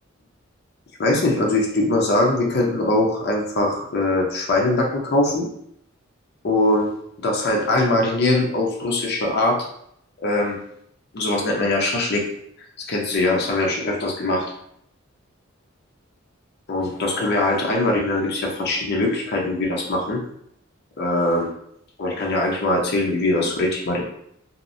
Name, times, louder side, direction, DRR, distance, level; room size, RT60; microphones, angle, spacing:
voice 1, 1.0-5.5 6.4-6.9 7.2-9.6 10.2-10.6 11.1-12.3 12.9-14.5 16.7-20.2 21.0-21.5 22.0-24.0, left 2 dB, 50° left, 0 dB, 0.5 m, -21 dB
2.7 x 2.0 x 2.5 m, 0.70 s
head